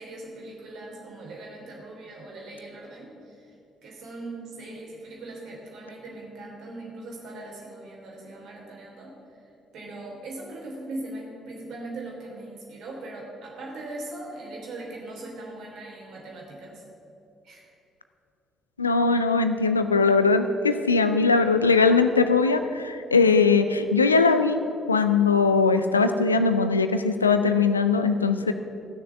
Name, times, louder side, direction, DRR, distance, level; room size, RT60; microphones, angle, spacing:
voice 1, 0.0-3.5 3.8-9.1 9.7-16.8 17.4-17.6, right 2 dB, 55° right, -2 dB, 3.1 m, -40 dB
voice 2, 18.8-24.6 24.9-28.5, left 4 dB, 85° left, 9 dB, 0.4 m, -20 dB
13.5 x 6.7 x 7.8 m, 2.6 s
figure-of-eight pair, 45°, 0 cm